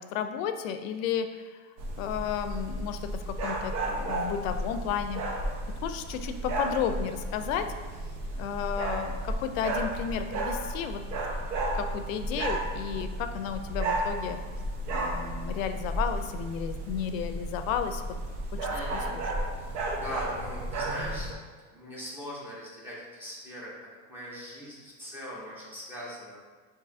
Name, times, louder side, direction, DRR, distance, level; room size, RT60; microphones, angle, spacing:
voice 1, 0.0-1.4 2.0-5.2 5.8-7.6 8.4-11.0 11.7-14.4 14.9-18.0 18.5-18.6 18.9-19.2, left 8 dB, 85° left, 8 dB, 0.5 m, -33 dB
sound 1, 1.8-21.3, right 1 dB, 65° right, 0.8 m, -33 dB
voice 2, 18.7-19.1 19.6-21.3 21.7-23.7 24.1-26.4, equal, 5° right, -6 dB, 0.7 m, -41 dB
6.5 x 2.7 x 2.6 m, 1.5 s
supercardioid pair, 165°, 39 cm